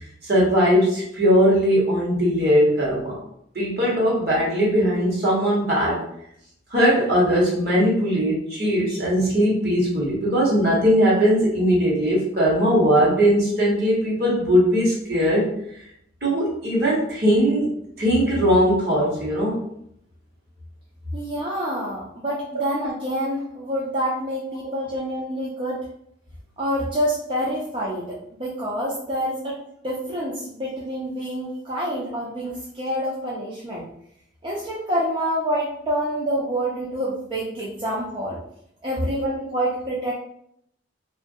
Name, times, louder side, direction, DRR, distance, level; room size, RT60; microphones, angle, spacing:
voice 1, 0.3-3.1 3.5-6.0 6.7-15.5 16.2-17.7 18.0-19.6, equal, 50° right, -5 dB, 1.1 m, -19 dB
voice 2, 21.1-25.8 26.6-29.6 29.8-33.9 34.4-38.4 38.8-40.1, equal, 25° right, -6 dB, 0.4 m, -27 dB
2.9 x 2.4 x 2.6 m, 0.72 s
head